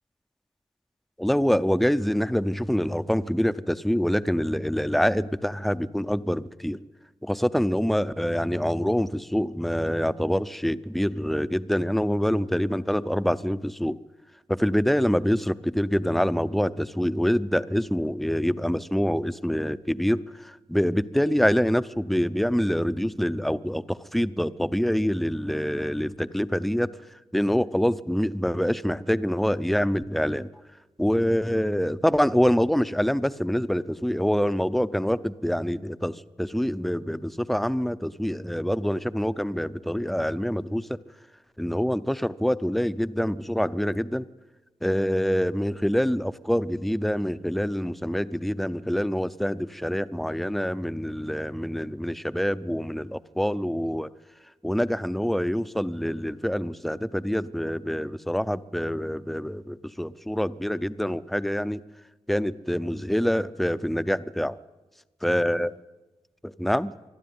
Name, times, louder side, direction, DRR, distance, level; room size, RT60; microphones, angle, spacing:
voice 1, 1.2-6.8 7.2-14.0 14.5-26.9 27.3-30.5 31.0-41.0 41.6-44.3 44.8-54.1 54.6-61.8 62.3-64.6 65.2-65.7 66.4-66.9, equal, ahead, 14 dB, 0.6 m, -25 dB
24.5 x 12.0 x 9.5 m, 1.2 s
wide cardioid pair, 100°, 11 cm